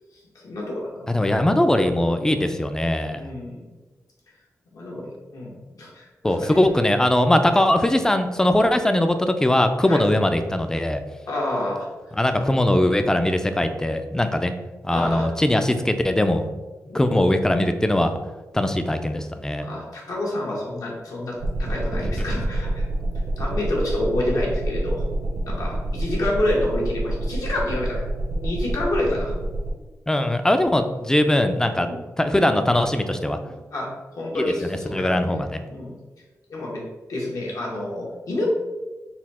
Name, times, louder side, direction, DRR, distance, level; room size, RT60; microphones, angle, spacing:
voice 1, 0.4-1.1 2.4-2.5 3.1-3.7 4.7-6.6 9.8-10.0 11.3-11.9 12.3-12.4 14.9-15.3 16.9-17.3 19.6-22.9 23.4-25.0 25.5-28.0 28.3-29.3 31.8-32.0 33.7-33.9 34.1-35.2 35.7-36.0 36.5-36.8 37.1-38.5, left 1 dB, 80° left, -4 dB, 1.3 m, -28 dB
voice 2, 1.1-3.2 6.2-11.0 12.2-14.5 14.8-16.4 16.9-18.1 18.5-19.7 22.0-22.4 30.1-31.9 32.2-33.4 34.4-34.5 34.9-35.6, left 1 dB, 10° left, 8 dB, 0.3 m, -20 dB
sound 1, 21.4-29.7, right 1 dB, 80° right, 0.9 m, -27 dB
4.1 x 2.3 x 4.1 m, 1.2 s
wide cardioid pair, 105°, 6 cm